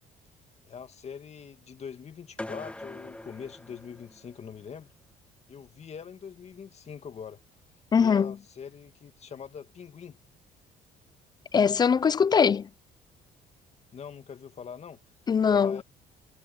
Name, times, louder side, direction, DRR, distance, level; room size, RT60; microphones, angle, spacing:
voice 1, 0.6-4.9 5.5-7.4 8.0-10.2 13.9-15.0 15.5-15.8, left 7 dB, 40° left, 2.2 m, -43 dB
sound 1, 2.4-4.5, left 1 dB, 5° left, 1.2 m, -42 dB
voice 2, 7.9-8.3 11.5-12.7 15.3-15.8, left 6 dB, 25° left, 0.4 m, -22 dB
cardioid pair, 110°, 17 cm